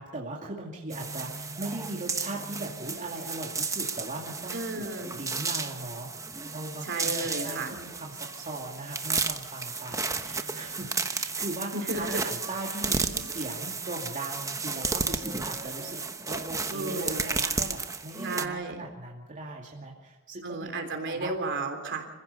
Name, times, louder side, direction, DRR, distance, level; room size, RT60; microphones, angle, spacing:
voice 1, 0.0-6.1 6.5-16.0 16.3-20.7 21.1-21.3, right 2 dB, 35° right, -2 dB, 2.5 m, -39 dB
sound 1, 0.9-18.5, right 4 dB, 15° right, 1.0 m, -33 dB
voice 2, 4.5-5.1 6.8-7.8 11.7-12.2 16.7-17.3 18.2-18.8 20.4-22.1, right 2 dB, 55° right, 5 dB, 3.3 m, -33 dB
26.5 x 16.0 x 6.8 m, 1.2 s
head